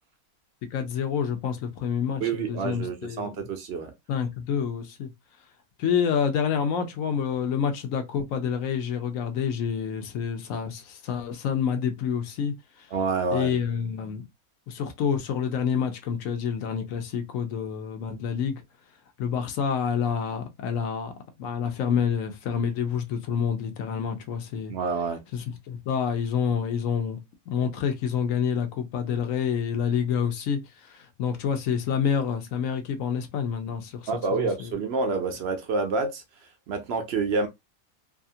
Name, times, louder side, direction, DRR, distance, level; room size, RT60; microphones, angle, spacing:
voice 1, 0.7-3.4 4.1-5.1 5.8-12.5 13.3-14.2 14.7-18.6 19.2-21.1 21.4-24.7 25.3-27.2 27.5-30.6 30.9-34.1 34.4-34.7, left 7 dB, 70° left, 1.0 m, -28 dB
voice 2, 2.2-3.9 12.9-13.6 24.7-25.2 34.1-36.2 36.7-37.5, right 4 dB, 65° right, 0.6 m, -28 dB
2.8 x 2.4 x 2.6 m
omnidirectional pair, 1.5 m